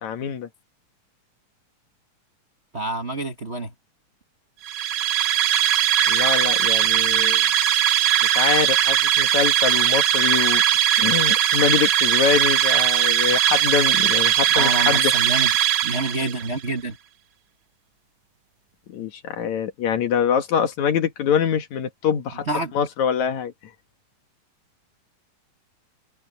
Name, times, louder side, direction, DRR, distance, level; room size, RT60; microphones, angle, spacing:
voice 1, 0.0-0.5 6.1-7.4 8.2-10.6 11.0-15.1 18.9-22.5 22.7-23.5, left 8 dB, 65° left, 2.8 m, -24 dB
voice 2, 2.7-3.7 14.5-15.5 15.8-17.0 22.5-22.7, right 2 dB, 40° right, 0.9 m, -27 dB
sound 1, 4.6-16.5, right 11 dB, 65° right, 1.2 m, -19 dB
omnidirectional pair, 3.7 m